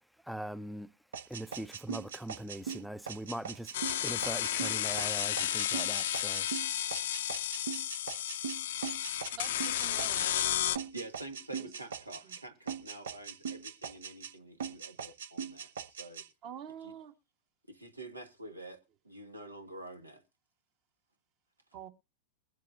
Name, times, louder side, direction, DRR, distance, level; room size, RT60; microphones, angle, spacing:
voice 1, 0.3-0.9 1.3-3.7 4.0-6.5, right 1 dB, ahead, 0.5 m, -41 dB
sound 1, 1.1-10.5 10.8-12.4 12.7-14.3 14.6-16.3, right 7 dB, 65° right, 0.7 m, -41 dB
sound 2, 3.7-10.8, left 12 dB, 60° left, 0.5 m, -32 dB
voice 2, 9.3-10.3 11.6-11.7 12.2-12.4 16.4-17.1 21.7-21.9, right 9 dB, 40° right, 1.4 m, -46 dB
voice 3, 10.9-16.2 16.8-16.9 17.7-20.2, right 2 dB, 85° right, 1.5 m, -47 dB
21.5 x 7.5 x 2.6 m
figure-of-eight pair, 90°, 0 cm